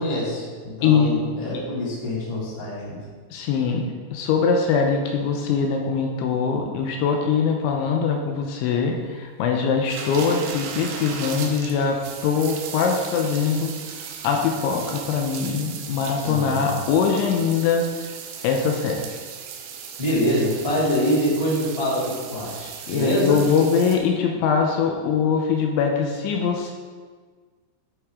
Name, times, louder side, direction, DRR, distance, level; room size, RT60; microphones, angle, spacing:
voice 1, 0.0-3.0 16.2-16.8 20.0-23.4, equal, 15° left, -8 dB, 1.5 m, -25 dB
voice 2, 0.8-1.1 1.5-1.6 3.3-13.7 14.2-17.9 18.4-19.0 22.9-26.7, left 6 dB, 80° left, 2 dB, 3.0 m, -22 dB
sound 1, 9.9-24.0, right 7 dB, 75° right, 2.7 m, -37 dB
10.5 x 8.4 x 3.6 m, 1.5 s
omnidirectional pair, 5.6 m